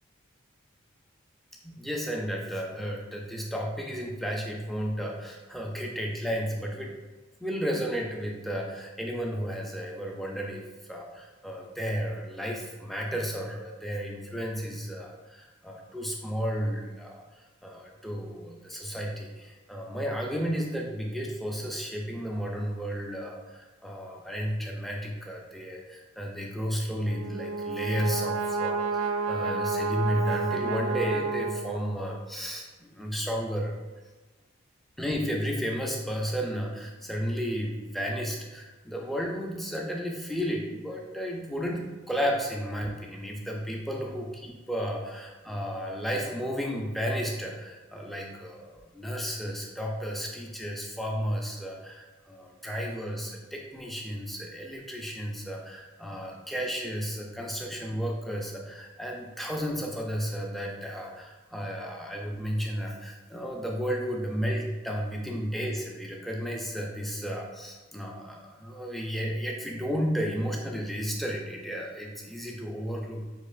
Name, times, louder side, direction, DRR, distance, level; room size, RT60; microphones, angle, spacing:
voice 1, 1.6-7.0 7.4-10.6 10.9-33.7 35.0-73.2, equal, ahead, -1 dB, 0.4 m, -33 dB
Brass instrument, 27.0-32.1, right 4 dB, 80° right, 0.3 m, -30 dB
6.4 x 2.8 x 2.4 m, 1.3 s
head